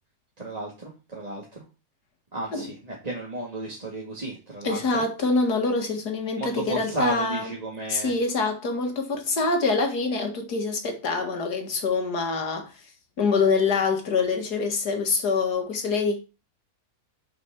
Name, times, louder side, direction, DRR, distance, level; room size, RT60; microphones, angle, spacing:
voice 1, 0.4-1.6 2.3-5.0 6.4-8.1, right 2 dB, 25° right, 2.0 m, -33 dB
voice 2, 4.6-7.5 7.9-12.7 13.2-16.2, left 4 dB, 80° left, 2.3 m, -25 dB
6.4 x 6.0 x 5.9 m
omnidirectional pair, 1.7 m